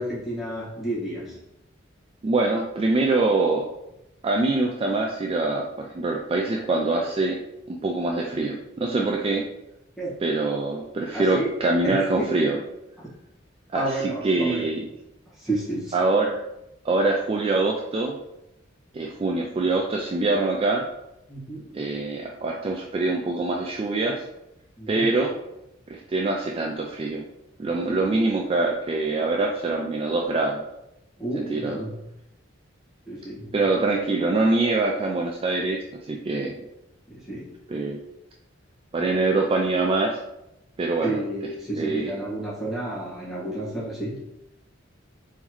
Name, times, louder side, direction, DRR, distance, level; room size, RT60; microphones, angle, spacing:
voice 1, 0.0-1.4 10.0-10.2 11.1-11.5 11.8-12.5 13.0-13.1 13.7-14.7 15.4-15.9 21.3-21.8 24.8-25.1 27.8-28.0 31.2-32.0 33.1-33.6 37.1-37.5 41.0-44.3, right 1 dB, ahead, -8 dB, 1.5 m, -31 dB
voice 2, 2.2-3.7 4.2-7.4 7.7-9.4 10.2-12.6 13.7-14.9 15.9-16.4 16.8-18.2 18.9-20.8 21.7-24.2 24.9-25.3 25.9-27.3 27.6-30.6 31.4-31.8 33.5-35.8 36.1-36.6 37.7-38.0 38.9-40.2 40.8-41.2 41.8-42.1, right 3 dB, 30° right, 1 dB, 0.3 m, -24 dB
4.0 x 3.8 x 3.0 m, 0.89 s
head